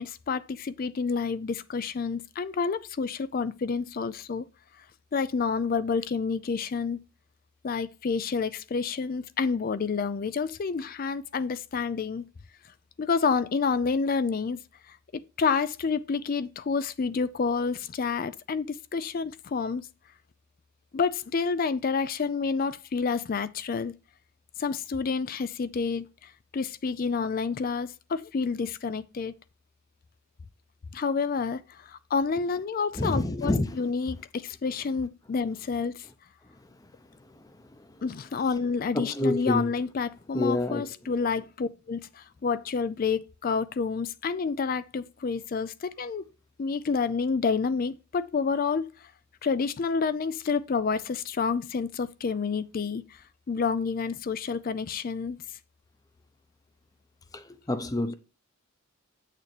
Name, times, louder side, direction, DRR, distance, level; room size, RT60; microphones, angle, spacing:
voice 1, 0.0-4.5 5.1-7.0 7.6-12.2 13.0-19.9 20.9-23.9 24.6-29.3 30.9-36.1 38.0-46.2 46.6-49.1 49.4-53.2 53.5-55.4, left 5 dB, 45° left, 0.4 m, -29 dB
voice 2, 32.9-33.8 38.9-39.7 40.3-40.9 57.3-58.1, left 1 dB, 15° left, 0.7 m, -27 dB
8.5 x 6.6 x 3.3 m
head